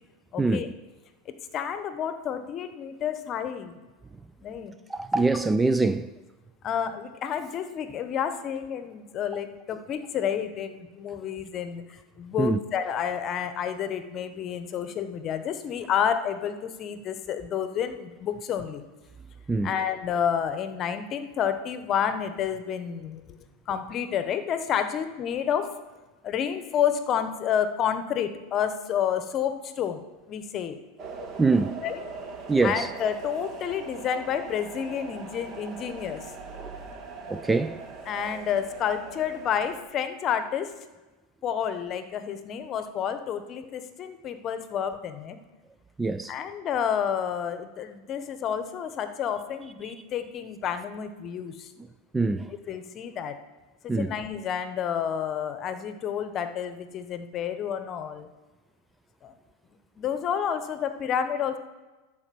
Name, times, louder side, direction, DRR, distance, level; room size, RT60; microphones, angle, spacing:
voice 1, 0.3-0.7 1.5-3.8 4.4-4.7 6.6-11.8 12.2-18.8 19.6-23.4 23.7-25.8 26.2-30.0 30.3-30.8 31.2-31.3 31.8-32.0 32.6-36.3 38.1-40.8 41.4-45.4 46.3-51.7 52.7-53.4 53.8-58.3 59.2-59.3 60.0-61.6, left 8 dB, 35° left, 1.0 m, -30 dB
voice 2, 4.9-6.1 12.4-12.6 19.5-19.8 31.4-31.8 32.5-32.9 36.6-36.8 37.3-37.8 46.0-46.4 49.8-49.9 52.1-52.5 53.9-54.1, right 3 dB, 10° right, 0.3 m, -24 dB
sound 1, 31.0-39.8, right 4 dB, 45° right, 1.6 m, -41 dB
12.5 x 5.0 x 6.9 m
supercardioid pair, 125°, 0 cm